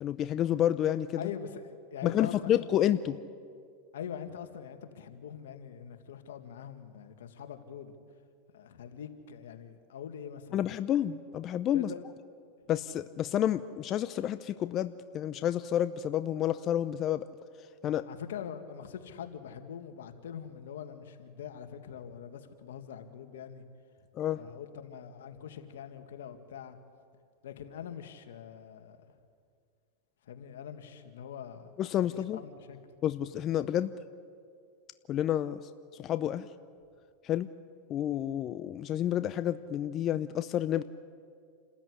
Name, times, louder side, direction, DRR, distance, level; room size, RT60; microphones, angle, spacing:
voice 1, 0.0-1.1 2.0-3.2 10.5-11.9 12.7-17.3 17.8-18.0 24.2-24.4 31.8-32.4 33.0-33.9 35.1-35.6 36.0-36.5 37.2-37.5 37.9-40.8, left 11 dB, 35° left, 12 dB, 0.7 m, -29 dB
voice 2, 1.2-2.6 3.9-7.9 8.5-10.7 11.7-12.0 18.1-23.6 24.3-26.8 27.4-29.0 30.2-31.7 32.0-32.8, left 8 dB, 85° left, 7 dB, 2.1 m, -43 dB
28.0 x 13.5 x 9.8 m, 2.3 s
supercardioid pair, 125°, 0 cm